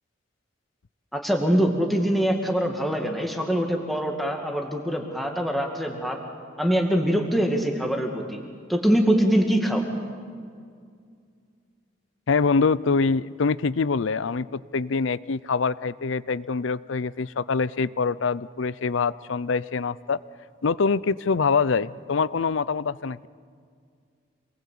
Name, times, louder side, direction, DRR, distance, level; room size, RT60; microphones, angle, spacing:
voice 1, 1.1-6.2 6.6-8.4 8.7-9.8, equal, ahead, 1 dB, 2.3 m, -23 dB
voice 2, 12.3-20.2 20.6-23.3, left 4 dB, 75° left, 19 dB, 0.6 m, -24 dB
27.0 x 20.0 x 8.6 m, 2.2 s
head